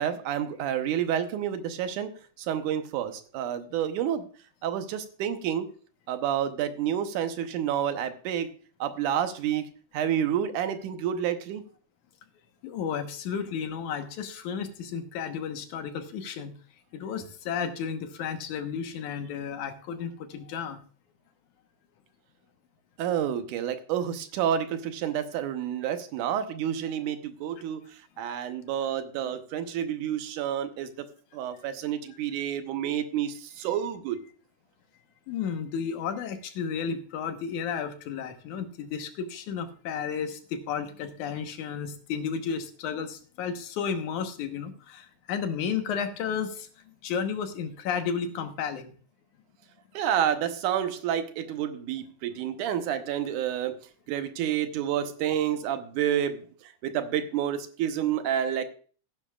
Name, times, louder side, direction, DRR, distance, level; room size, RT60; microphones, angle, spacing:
voice 1, 0.0-2.1 2.4-4.3 4.6-5.7 6.1-8.5 8.8-11.6 23.0-31.1 31.3-34.2 49.9-53.8 54.1-56.4 56.8-58.6, right 9 dB, 80° right, 9 dB, 2.4 m, -29 dB
voice 2, 12.6-16.5 16.9-20.8 35.3-48.9, left 7 dB, 75° left, 7 dB, 2.6 m, -33 dB
16.5 x 9.9 x 2.3 m, 0.41 s
omnidirectional pair, 3.5 m